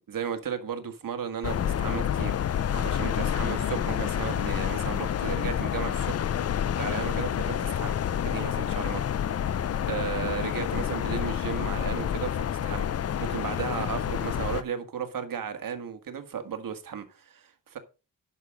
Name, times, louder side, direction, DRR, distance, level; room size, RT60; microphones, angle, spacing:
voice 1, 0.1-2.4 2.7-6.3 6.8-8.0 8.2-9.0 9.9-12.9 13.2-17.8, right 7 dB, 70° right, 1.8 m, -35 dB
sound 1, 1.4-14.6, left 9 dB, 45° left, 0.5 m, -28 dB
11.0 x 6.1 x 5.1 m
wide cardioid pair, 140°, 35 cm